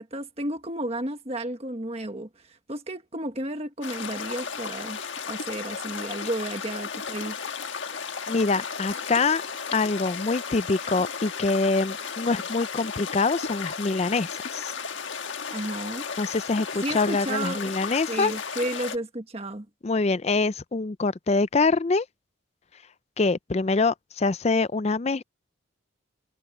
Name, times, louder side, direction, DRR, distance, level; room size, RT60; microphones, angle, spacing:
voice 1, 0.0-5.0 5.3-7.4 15.5-16.1 16.8-17.7 18.1-19.7, right 1 dB, 30° right, 1.5 m, -32 dB
sound 1, 3.8-19.0, left 6 dB, 65° left, 1.5 m, -34 dB
voice 2, 8.3-9.4 9.7-14.7 16.2-18.3 19.8-22.1 23.2-25.2, left 3 dB, 30° left, 0.4 m, -25 dB
head